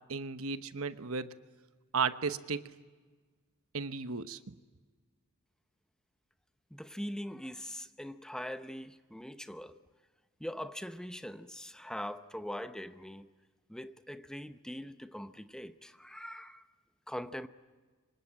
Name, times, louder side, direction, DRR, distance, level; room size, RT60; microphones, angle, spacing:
voice 1, 0.1-1.3 1.9-2.7 3.7-4.5, right 5 dB, 70° right, 1.1 m, -34 dB
voice 2, 6.7-9.8 10.4-13.3 13.7-16.6 17.1-17.5, equal, 5° left, 0.8 m, -42 dB
26.0 x 24.5 x 8.8 m
head